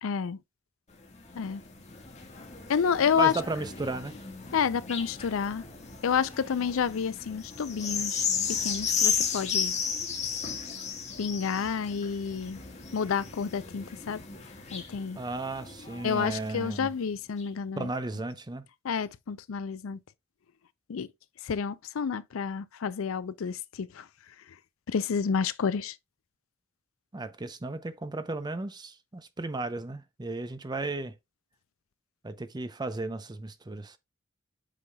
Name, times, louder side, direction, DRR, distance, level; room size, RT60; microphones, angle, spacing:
voice 1, 0.0-0.4 1.4-1.6 2.7-3.3 4.5-5.6 6.0-8.2 8.6-9.7 11.2-12.6 12.9-14.2 14.7-15.2 16.0-17.9 18.8-20.0 20.9-21.1 21.4-24.0 24.9-25.9, left 6 dB, 75° left, 0.4 m, -29 dB
sound 1, 0.9-16.8 17.4-17.5, left 6 dB, 35° left, 1.6 m, -35 dB
voice 2, 3.2-4.2 15.2-16.9 17.7-18.6 27.1-31.2 32.2-34.0, right 3 dB, 20° right, 0.6 m, -34 dB
8.3 x 5.4 x 2.3 m
head